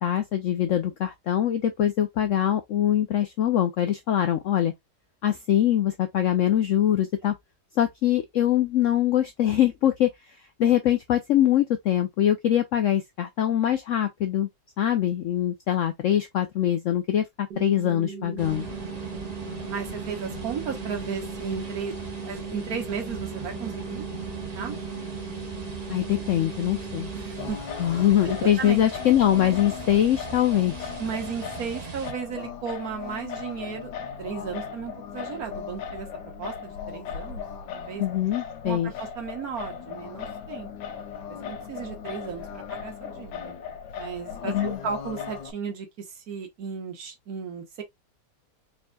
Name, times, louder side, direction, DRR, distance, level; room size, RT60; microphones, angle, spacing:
voice 1, 0.0-4.7 5.2-7.3 7.8-10.1 10.6-14.5 14.8-18.7 25.9-27.1 27.8-30.9 38.0-38.9 44.5-44.8, left 11 dB, 70° left, 0.7 m, -23 dB
sound 1, 17.5-27.5, right 4 dB, 80° right, 1.4 m, -38 dB
sound 2, 18.4-32.1, right 5 dB, 35° right, 0.7 m, -39 dB
voice 2, 19.7-21.9 22.2-24.1 24.5-24.8 27.1-27.6 28.2-28.8 31.0-33.9 34.2-37.4 37.7-38.0 38.6-40.7 41.3-43.5 44.0-47.8, right 6 dB, 60° right, 1.4 m, -35 dB
Singing, 27.4-45.5, left 7 dB, 90° left, 1.3 m, -37 dB
4.1 x 3.4 x 2.3 m
omnidirectional pair, 1.8 m